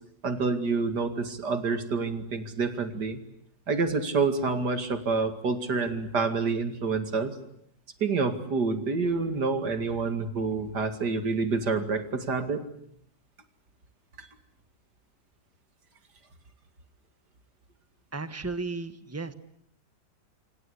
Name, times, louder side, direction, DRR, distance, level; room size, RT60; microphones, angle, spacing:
voice 1, 0.2-3.2 3.7-7.3 8.0-12.6 14.2-14.3, right 4 dB, 75° right, 8 dB, 2.8 m, -28 dB
voice 2, 18.1-19.3, right 3 dB, 10° right, 11 dB, 1.2 m, -34 dB
26.5 x 26.5 x 8.3 m, 0.73 s
omnidirectional pair, 1.8 m